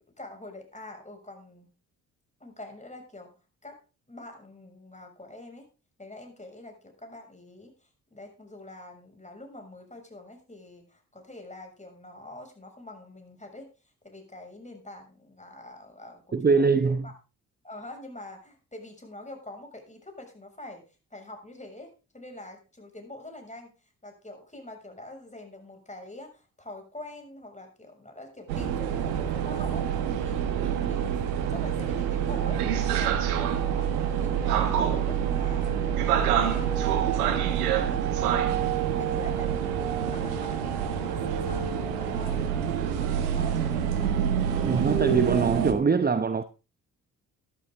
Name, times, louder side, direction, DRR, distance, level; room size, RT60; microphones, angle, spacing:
voice 1, 0.2-1.7 2.4-3.3 3.6-3.8 4.1-5.7 6.0-7.7 8.1-13.7 14.0-17.1 17.6-20.8 21.1-23.7 24.0-29.9 30.2-38.2 38.5-42.6 42.9-44.1, left 1 dB, 15° left, 6.7 m, -45 dB
voice 2, 16.3-17.1 44.6-46.4, right 5 dB, 20° right, 0.9 m, -23 dB
sound 1, 28.5-45.7, right 9 dB, 85° right, 1.5 m, -26 dB
13.0 x 12.0 x 3.8 m
hypercardioid pair, 40°, 44 cm